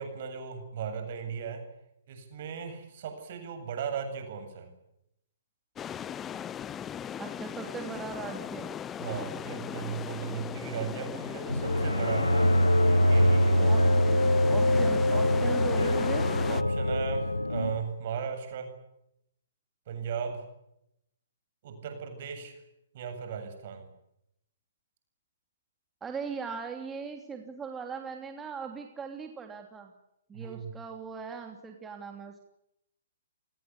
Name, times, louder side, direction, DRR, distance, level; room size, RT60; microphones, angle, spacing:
voice 1, 0.0-1.6 2.1-4.7 9.0-13.9 16.5-18.7 19.9-20.5 21.6-22.6 22.9-23.9 30.3-30.7, right 7 dB, 45° right, 7 dB, 7.9 m, -37 dB
sound 1, 5.8-16.6, left 9 dB, 15° left, 1.0 m, -38 dB
voice 2, 7.2-8.7 13.6-13.8 14.5-16.2 26.0-29.9 30.3-32.4, right 5 dB, 15° right, 3 dB, 3.1 m, -39 dB
sound 2, 11.5-17.8, left 1 dB, 85° left, 1.4 m, -24 dB
29.5 x 19.5 x 8.5 m, 0.81 s
figure-of-eight pair, 120°, 0 cm